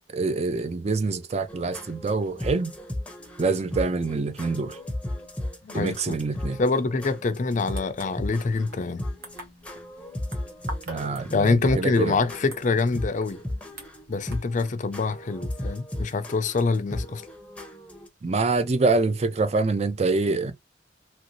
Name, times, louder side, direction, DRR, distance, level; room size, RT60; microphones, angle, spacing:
voice 1, 0.0-2.7 3.4-4.8 5.7-6.6 10.9-12.2 18.2-20.5, right 3 dB, 40° right, 0.4 m, -25 dB
sound 1, 1.5-18.1, left 1 dB, 5° left, 0.7 m, -36 dB
voice 2, 5.6-6.2 6.6-9.0 11.3-13.4 14.1-17.2, left 3 dB, 45° left, 0.5 m, -25 dB
sound 2, 7.6-14.4, right 2 dB, 60° right, 1.1 m, -46 dB
3.0 x 2.6 x 2.9 m
head